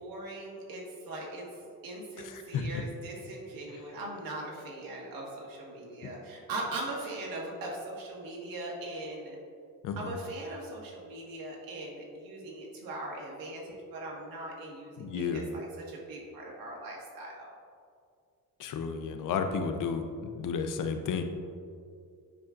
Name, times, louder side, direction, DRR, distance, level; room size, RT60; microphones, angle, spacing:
voice 1, 0.0-1.5 1.8-9.4 10.0-17.5, right 2 dB, 85° right, -2 dB, 1.6 m, -40 dB
voice 2, 2.2-2.8 3.7-3.8 6.0-6.1 9.8-10.1 15.0-15.5 18.6-21.2, left 5 dB, 65° left, 6 dB, 0.6 m, -33 dB
9.1 x 5.8 x 2.5 m, 2.3 s
cardioid pair, 145°, 34 cm